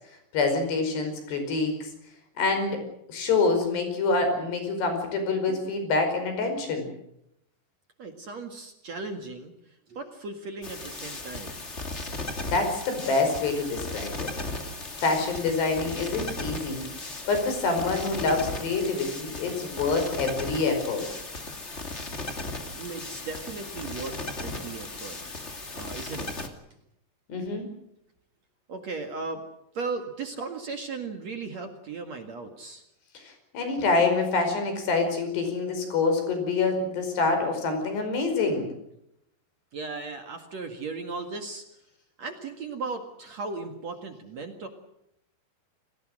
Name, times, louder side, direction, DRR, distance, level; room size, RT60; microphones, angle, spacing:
voice 1, 0.3-1.9 2.4-2.8 3.1-6.9 12.1-12.2 12.5-14.3 15.0-16.9 17.3-21.1 27.3-27.7 33.2-38.7, left 3 dB, 75° left, 6 dB, 7.1 m, -26 dB
voice 2, 8.0-11.6 22.7-25.2 25.7-26.3 28.7-29.5 29.7-32.8 39.7-41.7 42.2-44.7, right 4 dB, 50° right, 5 dB, 2.5 m, -37 dB
sound 1, 10.6-26.5, left 2 dB, 25° left, 1.8 m, -36 dB
29.5 x 19.5 x 6.5 m, 0.80 s
omnidirectional pair, 4.9 m